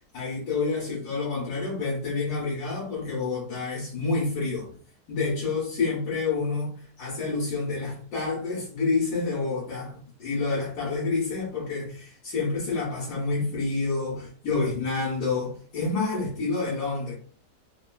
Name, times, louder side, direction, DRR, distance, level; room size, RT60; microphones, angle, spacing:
voice 1, 0.1-4.7 5.1-17.1, left 3 dB, 75° left, -6 dB, 1.5 m, -28 dB
3.5 x 2.2 x 2.2 m, 0.43 s
omnidirectional pair, 1.7 m